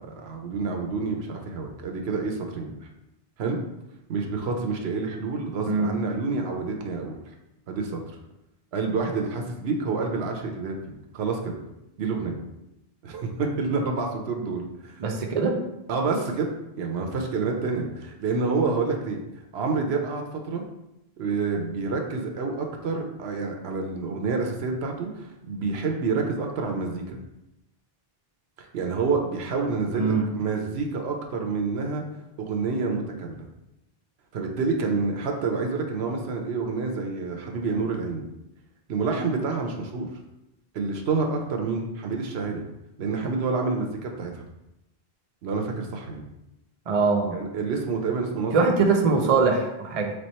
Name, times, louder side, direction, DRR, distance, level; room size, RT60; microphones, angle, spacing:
voice 1, 0.0-2.7 3.4-3.6 4.1-7.2 7.7-8.2 8.7-10.8 11.1-11.5 12.0-12.4 13.0-14.9 15.9-16.5 16.7-19.2 19.5-20.6 21.2-27.2 28.7-32.0 32.4-33.5 34.3-38.2 38.9-40.1 40.7-42.6 43.0-44.4 45.4-46.2 47.3-49.2, right 4 dB, 85° right, 2 dB, 0.9 m, -28 dB
voice 2, 15.0-15.6 29.9-30.2 46.9-47.4 48.5-50.1, right 4 dB, 45° right, 2 dB, 0.6 m, -22 dB
3.3 x 3.3 x 4.1 m, 0.90 s
omnidirectional pair, 1.0 m